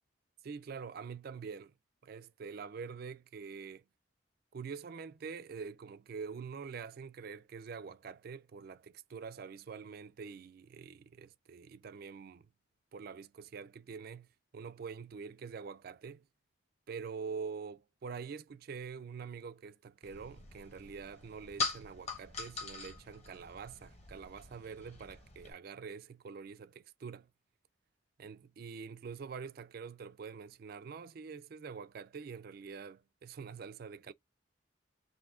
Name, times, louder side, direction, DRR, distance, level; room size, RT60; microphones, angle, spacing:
voice 1, 0.4-1.7 2.0-3.8 4.5-12.5 12.9-14.3 14.5-16.2 16.9-27.3 28.2-34.1, right 5 dB, 50° right, 0.3 m, -45 dB
sound 1, 20.0-25.5, left 4 dB, 35° left, 0.9 m, -42 dB
3.5 x 2.7 x 3.6 m
head